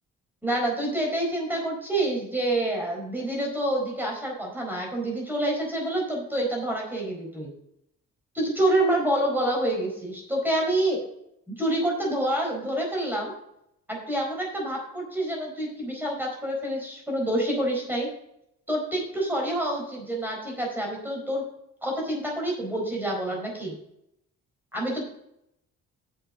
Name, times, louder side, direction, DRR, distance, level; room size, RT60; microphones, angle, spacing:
voice 1, 0.4-7.5 8.3-11.0 11.5-13.3 13.9-18.1 18.7-21.4 21.8-23.8 24.7-25.0, right 1 dB, 5° right, -1 dB, 4.4 m, -27 dB
7.4 x 6.8 x 6.3 m, 0.76 s
cardioid pair, 90°, 30 cm